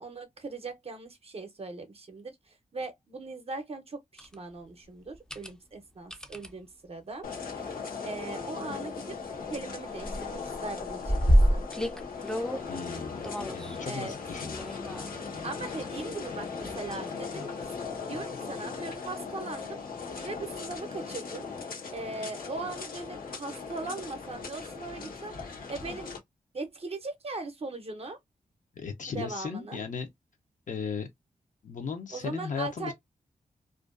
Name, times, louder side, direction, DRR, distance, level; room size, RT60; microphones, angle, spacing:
voice 1, 0.0-7.3 7.6-9.2 9.5-11.6 13.8-14.1 15.4-19.8 20.2-21.5 21.9-25.4 25.7-26.1 26.5-28.2 29.1-29.8 32.1-32.9, right 3 dB, 45° right, 0.6 m, -39 dB
sound 1, 4.2-4.3 5.1-5.5 6.1-6.5 7.7-7.9 8.4-8.5 8.7-9.7 10.0-12.7 13.2-13.8 14.4-15.3 16.6-17.1 17.6-17.7 20.1-20.2, equal, 5° left, 0.4 m, -28 dB
sound 2, 7.2-26.2, left 5 dB, 85° left, 0.8 m, -38 dB
voice 2, 12.7-14.6 28.8-30.1 30.7-31.1 31.6-32.9, left 5 dB, 60° left, 0.5 m, -36 dB
2.4 x 2.2 x 2.3 m
wide cardioid pair, 125°, 15 cm